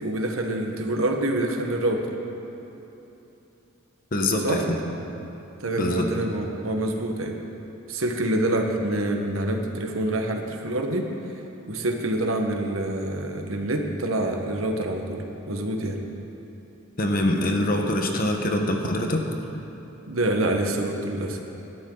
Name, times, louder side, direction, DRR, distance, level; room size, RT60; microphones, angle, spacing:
voice 1, 0.0-2.1 4.4-4.6 5.6-7.4 7.9-11.1 11.7-16.0 20.1-21.4, right 1 dB, 75° right, 3 dB, 1.3 m, -26 dB
voice 2, 4.1-4.8 5.8-6.1 17.0-19.2, left 1 dB, 45° left, 3 dB, 1.2 m, -24 dB
19.5 x 12.5 x 3.9 m, 3.0 s
head